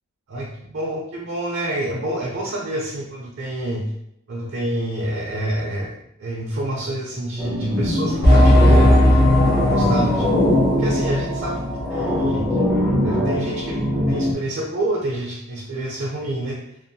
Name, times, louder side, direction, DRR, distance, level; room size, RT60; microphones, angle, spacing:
voice 1, 0.3-3.9 4.3-5.9 6.2-10.3 10.7-12.7 13.0-13.8 14.1-16.6, right 1 dB, 60° right, -2 dB, 0.5 m, -27 dB
sound 1, 7.4-14.3, left 1 dB, 5° right, 0.4 m, -22 dB
sound 2, 8.2-12.5 12.8-12.9 13.5-13.6, left 1 dB, 45° left, 0.6 m, -17 dB
2.6 x 2.1 x 2.6 m, 0.77 s
head